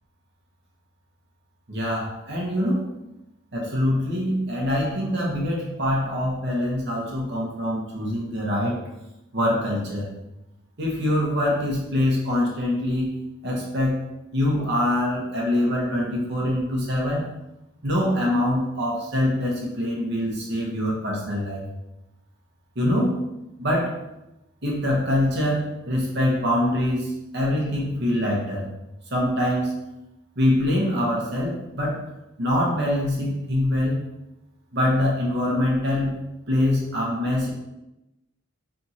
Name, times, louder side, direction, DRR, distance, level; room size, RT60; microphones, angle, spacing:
voice 1, 1.7-2.9 3.5-8.8 9.3-10.1 10.8-13.1 13.4-14.0 14.3-17.3 17.8-21.7 22.7-23.2 23.6-23.9 24.6-28.7 29.1-29.7 30.4-32.0 32.4-34.0 34.7-36.2 36.5-37.5, left 1 dB, 55° right, -3 dB, 1.1 m, -24 dB
4.3 x 3.4 x 2.8 m, 0.94 s
head